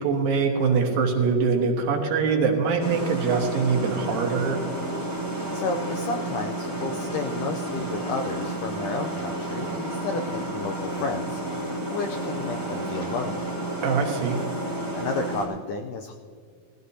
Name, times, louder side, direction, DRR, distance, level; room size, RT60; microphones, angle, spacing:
voice 1, 0.0-4.6 13.8-14.4, right 5 dB, 70° right, 2 dB, 3.2 m, -23 dB
sound 1, 2.8-15.5, right 1 dB, 20° left, 3.1 m, -31 dB
voice 2, 5.5-11.4 11.9-13.5 14.9-16.1, left 4 dB, 80° left, 5 dB, 1.8 m, -31 dB
18.5 x 14.5 x 2.8 m, 2.2 s
omnidirectional pair, 4.4 m